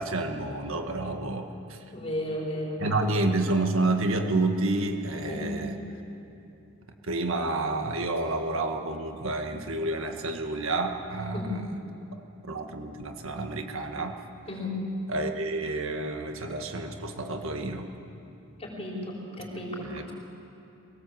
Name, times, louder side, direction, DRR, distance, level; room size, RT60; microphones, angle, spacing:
voice 1, 0.0-1.8 2.8-5.8 7.1-11.6 12.5-14.2 15.1-17.9 19.8-20.1, right 2 dB, 70° right, 5 dB, 1.7 m, -29 dB
voice 2, 1.9-3.1 5.3-5.6 11.3-11.6 14.5-14.8 18.6-19.9, left 1 dB, 25° left, -3 dB, 4.8 m, -34 dB
23.5 x 18.0 x 7.9 m, 2.9 s
head